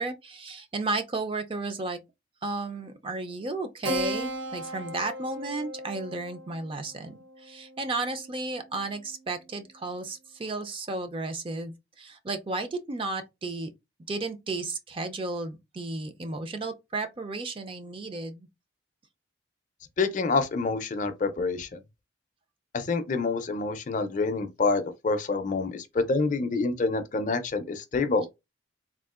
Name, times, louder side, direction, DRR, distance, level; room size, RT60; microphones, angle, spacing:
voice 1, 0.0-2.0 2.4-13.7 14.1-18.5, right 3 dB, 30° right, 0.4 m, -33 dB
Keyboard (musical), 3.8-8.8, right 1 dB, 75° right, 0.7 m, -37 dB
voice 2, 20.0-21.7 22.7-28.3, left 3 dB, 40° left, 0.4 m, -27 dB
3.6 x 2.4 x 2.4 m
head